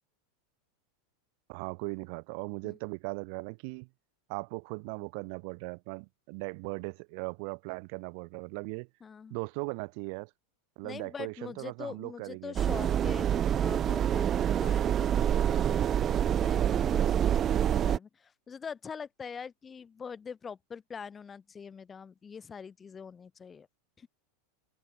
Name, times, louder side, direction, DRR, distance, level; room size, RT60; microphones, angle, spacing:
voice 1, 1.5-3.9 4.3-8.9 9.3-10.3 10.8-12.5, right 36 dB, 50° right, 2.2 m, -38 dB
voice 2, 9.0-9.4 10.8-14.3 14.6-23.7 24.0-24.1, left 6 dB, 15° left, 2.4 m, -44 dB
sound 1, 12.6-18.0, right 9 dB, 25° right, 0.8 m, -26 dB
supercardioid pair, 160°, 0 cm